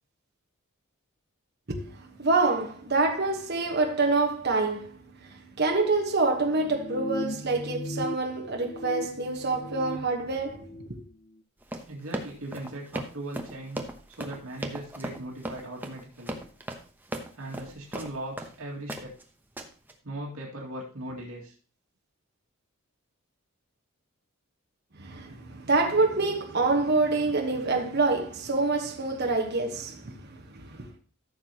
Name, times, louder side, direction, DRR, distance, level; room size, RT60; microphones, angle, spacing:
voice 1, 1.7-11.0 25.0-30.9, right 3 dB, 50° right, 1.3 m, -27 dB
sound 1, 6.4-8.1 8.4-10.0 10.4-10.9, left 1 dB, 55° left, 0.9 m, -37 dB
Run, 11.6-18.5 18.9-19.2 19.6-19.9, right 1 dB, 10° right, 0.9 m, -37 dB
voice 2, 11.9-16.4 17.3-19.1 20.0-21.6, right 1 dB, 75° right, 2.3 m, -39 dB
14.0 x 6.6 x 2.9 m
head